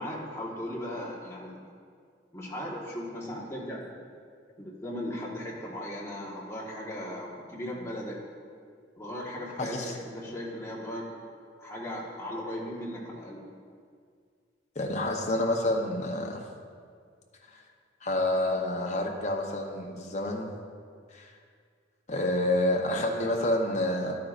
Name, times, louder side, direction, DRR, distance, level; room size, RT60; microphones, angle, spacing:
voice 1, 0.0-1.6 2.3-3.9 4.6-8.2 9.0-11.1 11.6-13.4, left 1 dB, 15° left, -5 dB, 1.5 m, -37 dB
voice 2, 9.6-10.0 14.7-16.5 17.5-17.6 18.0-20.5 21.1-21.3 22.1-24.2, left 1 dB, 35° left, 1 dB, 0.9 m, -28 dB
12.0 x 9.4 x 2.5 m, 2.1 s
head